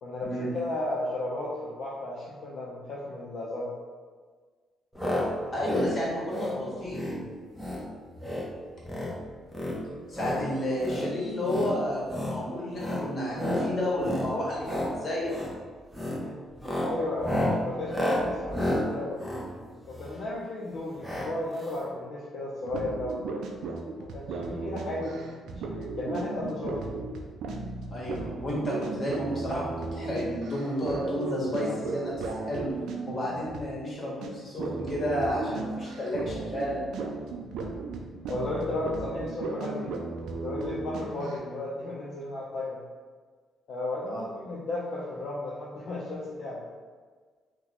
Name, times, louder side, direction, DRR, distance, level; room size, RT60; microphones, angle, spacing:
voice 1, 0.0-3.7 16.0-16.3 16.8-19.2 19.9-23.2 24.0-27.0 32.5-32.6 38.3-40.0 40.4-42.8 43.7-46.7, left 2 dB, 65° left, -6 dB, 0.6 m, -34 dB
sound 1, 5.0-5.3 5.5-5.9 6.3-6.6 6.9-7.2 7.5-7.8 8.1-8.5 8.8-9.1 9.5-10.4 10.8-11.0 11.4-11.7 12.1-12.4 12.8-13.0 13.4-13.7 14.0-14.3 14.6-14.9 15.3-15.5 15.9-16.2 16.5-20.2 21.0-21.3 21.6-21.7 21.8-21.9, left 1 dB, 5° left, 0.8 m, -31 dB
voice 2, 5.5-7.3 10.1-15.3 27.9-32.6 33.1-36.8 44.0-44.2, left 1 dB, 45° left, -5 dB, 1.3 m, -31 dB
sound 2, 22.6-33.9 34.2-34.3 34.6-41.4, right 3 dB, 80° right, 0.4 m, -36 dB
2.9 x 2.2 x 3.9 m, 1.5 s
cardioid pair, 90°, 0 cm